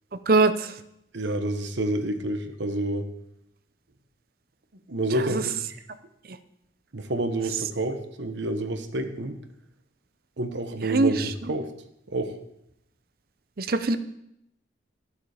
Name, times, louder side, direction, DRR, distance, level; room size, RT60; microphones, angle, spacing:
voice 1, 0.3-0.8 5.1-5.4 6.3-6.4 10.8-11.5 13.6-14.0, right 3 dB, 50° right, 11 dB, 0.6 m, -23 dB
voice 2, 1.1-3.1 4.9-5.7 6.9-9.4 10.4-11.2 11.5-11.7 12.1-12.4, right 1 dB, 70° right, 7 dB, 1.1 m, -28 dB
12.5 x 7.2 x 5.0 m, 0.79 s
head